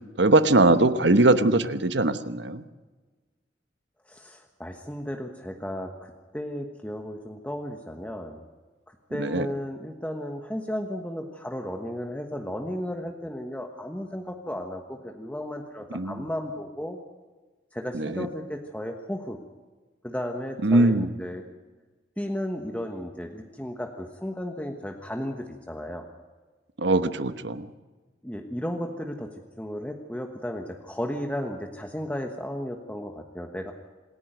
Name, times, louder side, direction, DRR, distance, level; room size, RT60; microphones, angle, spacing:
voice 1, 0.2-2.6 9.2-9.5 15.9-16.2 17.9-18.3 20.6-21.1 26.8-27.7, right 2 dB, 75° right, 11 dB, 1.1 m, -21 dB
voice 2, 4.1-8.4 8.9-17.0 17.7-19.4 20.0-21.4 22.2-26.0 28.2-33.7, equal, 10° left, 3 dB, 1.2 m, -34 dB
26.5 x 11.0 x 9.2 m, 1.3 s
head